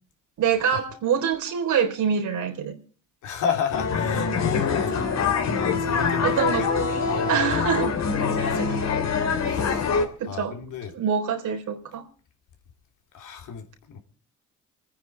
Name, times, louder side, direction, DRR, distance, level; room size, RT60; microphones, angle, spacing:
voice 1, 0.4-2.8 6.2-6.7 7.3-7.9 8.4-8.8 10.2-10.6 10.9-12.1, right 7 dB, 75° right, 3.9 m, -25 dB
voice 2, 3.2-5.1 5.6-6.7 7.1-7.6 8.2-9.1 9.4-9.9 10.3-10.9 13.1-14.0, left 8 dB, 85° left, 3.4 m, -32 dB
sound 1, 3.7-10.1, left 5 dB, 60° left, 3.1 m, -24 dB
26.0 x 9.6 x 4.6 m
cardioid pair, 90°, 30 cm